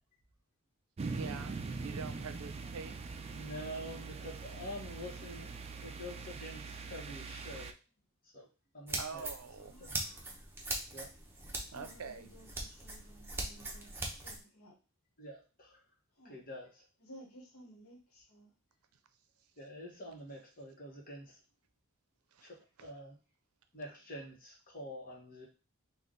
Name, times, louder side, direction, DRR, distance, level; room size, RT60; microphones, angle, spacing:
sound 1, 1.0-7.7, right 4 dB, 30° right, 0.3 m, -42 dB
voice 1, 1.1-3.0 9.0-9.7 11.7-12.3 22.3-22.4, right 5 dB, 80° right, 9 dB, 0.5 m, -45 dB
voice 2, 3.3-7.8 8.3-8.5 8.7-9.3 9.6-10.0 10.9-11.1 15.2-15.8 16.3-16.7 19.6-21.4 22.4-23.1 23.7-25.5, equal, 40° left, -2 dB, 1.3 m, -47 dB
sound 2, 8.9-14.4, right 2 dB, 10° right, 0.8 m, -41 dB
voice 3, 9.5-10.3 11.7-14.8 16.1-16.4 17.0-18.5, equal, 70° left, 0 dB, 1.3 m, -57 dB
3.6 x 2.5 x 3.8 m, 0.32 s
head